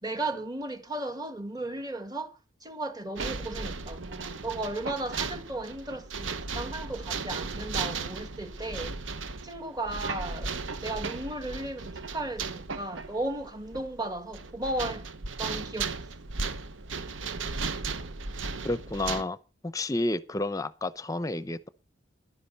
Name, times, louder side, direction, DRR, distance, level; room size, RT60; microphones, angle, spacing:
voice 1, 0.0-2.3 2.6-9.1 9.4-15.0 15.4-16.0, right 2 dB, 20° right, 1.7 m, -35 dB
sound 1, 3.2-19.2, right 4 dB, 85° right, 1.0 m, -36 dB
voice 2, 18.6-19.4 19.6-21.7, left 2 dB, 20° left, 0.7 m, -30 dB
11.0 x 10.0 x 5.4 m
head